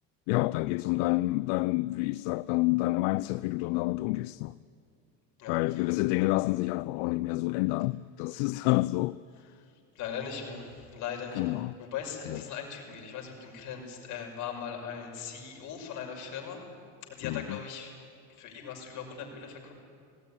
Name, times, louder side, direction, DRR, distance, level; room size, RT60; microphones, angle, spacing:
voice 1, 0.3-4.6 5.5-9.2 11.3-11.8 12.2-12.4 17.2-17.6, left 21 dB, 70° left, 0.5 m, -28 dB
voice 2, 5.4-5.8 9.9-16.7 17.0-17.9 18.4-19.7, left 7 dB, 55° left, 5.7 m, -39 dB
19.0 x 18.0 x 9.9 m
supercardioid pair, 120°, 37 cm